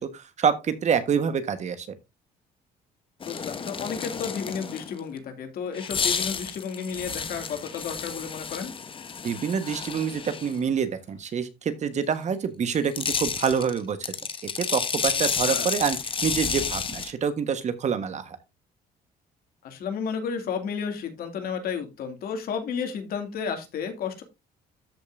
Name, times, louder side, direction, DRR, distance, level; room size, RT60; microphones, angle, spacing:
voice 1, 0.1-1.9 9.2-14.1 14.6-18.4, right 7 dB, 45° right, 1.4 m, -27 dB
voice 2, 3.2-8.7 15.4-15.7 19.6-24.2, left 6 dB, 65° left, 2.5 m, -32 dB
sound 1, 3.2-5.0 5.7-10.6 12.7-17.1, left 6 dB, 30° left, 1.1 m, -31 dB
13.5 x 5.4 x 2.6 m
cardioid pair, 110°, 17 cm